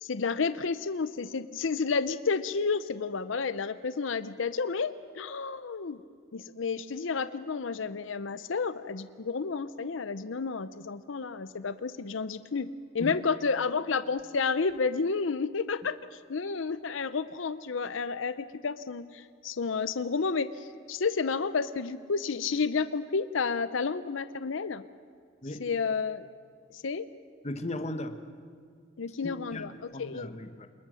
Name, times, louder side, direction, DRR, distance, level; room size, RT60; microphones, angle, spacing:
voice 1, 0.0-6.0 6.3-12.7 12.9-24.8 25.6-26.3 26.7-27.1 29.0-30.3, left 5 dB, 70° left, 13 dB, 0.6 m, -31 dB
voice 2, 27.4-28.2 29.2-30.7, left 1 dB, 35° left, 8 dB, 1.3 m, -37 dB
27.5 x 20.5 x 6.4 m, 2.1 s
head